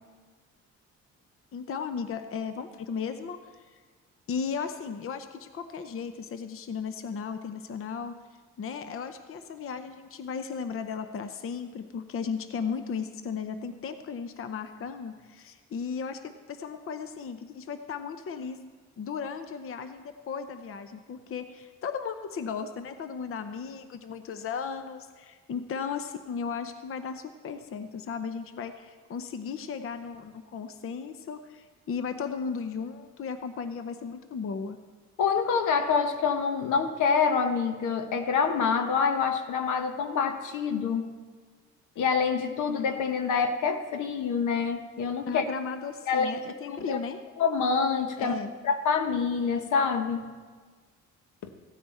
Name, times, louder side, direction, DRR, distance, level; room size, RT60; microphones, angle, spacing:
voice 1, 1.5-3.8 4.3-8.2 8.6-18.7 19.0-34.8 45.3-47.2 48.2-48.5, left 6 dB, 45° left, 9 dB, 0.7 m, -35 dB
voice 2, 35.2-41.1 42.0-45.5 46.1-46.4 46.7-47.0 47.4-48.3 48.6-50.3, left 5 dB, 80° left, 7 dB, 1.0 m, -26 dB
15.5 x 9.3 x 4.2 m, 1.5 s
cardioid pair, 90°, 30 cm